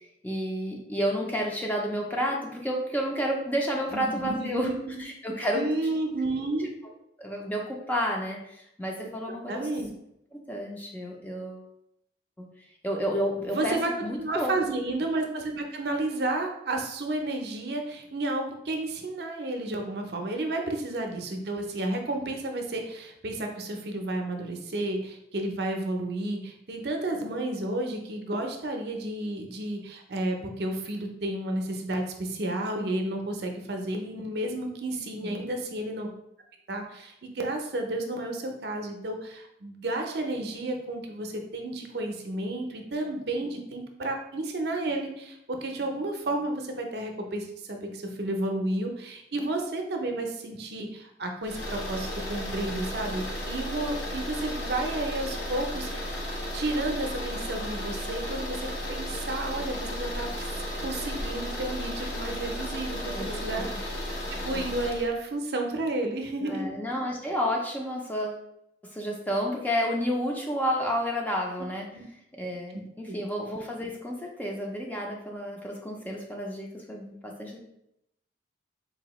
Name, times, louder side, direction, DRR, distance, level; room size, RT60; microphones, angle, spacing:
voice 1, 0.2-4.7 5.0-5.6 7.2-9.7 10.3-11.7 12.4-14.5 35.2-35.5 63.1-63.8 66.4-68.4 68.8-71.9 72.3-77.6, equal, 10° left, -1 dB, 0.4 m, -31 dB
voice 2, 3.9-5.0 5.5-6.7 9.5-9.9 13.4-13.9 14.2-36.1 36.7-56.2 56.5-60.5 60.8-63.9 64.4-66.6 71.9-72.0 73.1-73.2, right 2 dB, 60° right, 3 dB, 0.5 m, -32 dB
sound 1, 51.4-65.1, equal, 75° left, 0.8 m, -34 dB
4.0 x 2.7 x 3.0 m, 0.81 s
head